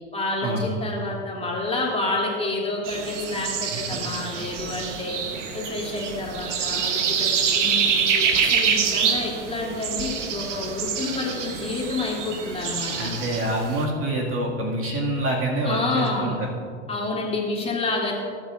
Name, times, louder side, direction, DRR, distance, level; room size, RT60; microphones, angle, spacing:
voice 1, 0.1-5.2 5.5-13.1 15.6-16.4 16.9-18.1, left 2 dB, 15° left, -4 dB, 3.0 m, -29 dB
sound 1, 2.9-13.9, right 6 dB, 85° right, 1.1 m, -26 dB
voice 2, 13.0-16.5, right 1 dB, 40° right, -2 dB, 2.3 m, -26 dB
19.5 x 8.5 x 2.6 m, 2.3 s
hypercardioid pair, 90°, 35 cm